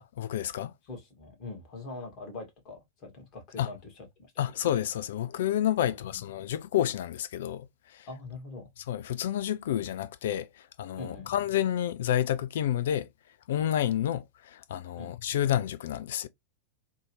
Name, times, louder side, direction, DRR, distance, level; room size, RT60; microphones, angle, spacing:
voice 1, 0.0-0.7 3.6-3.7 4.4-8.1 8.9-13.1 13.5-16.3, left 11 dB, 60° left, 0.3 m, -30 dB
voice 2, 0.8-4.1 5.8-6.2 8.1-8.7 11.0-11.3 15.0-15.1, left 3 dB, 40° left, 2.0 m, -43 dB
3.7 x 2.8 x 3.1 m
figure-of-eight pair, 90°, 0 cm